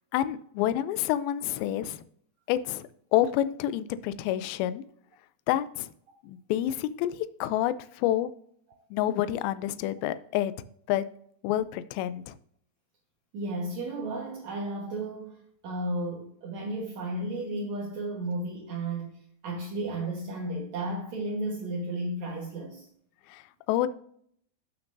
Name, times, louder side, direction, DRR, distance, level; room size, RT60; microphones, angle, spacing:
voice 1, 0.1-2.0 2.5-4.8 5.5-5.9 6.2-8.3 8.9-10.5 10.9-11.1 11.4-12.4 23.3-23.9, left 12 dB, 85° left, 2.1 m, -28 dB
voice 2, 13.3-22.9, right 2 dB, 60° right, 2.1 m, -33 dB
14.5 x 6.0 x 2.6 m
omnidirectional pair, 4.8 m